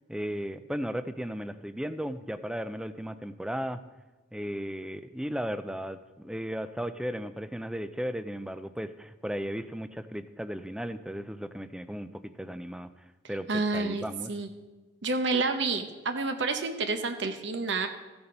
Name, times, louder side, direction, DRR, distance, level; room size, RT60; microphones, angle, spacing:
voice 1, 0.1-3.8 4.3-12.9 13.3-14.3, equal, 5° right, 12 dB, 0.4 m, -35 dB
voice 2, 13.5-14.5 15.0-17.9, right 3 dB, 65° right, 6 dB, 0.8 m, -29 dB
15.0 x 7.0 x 5.3 m, 1.3 s
head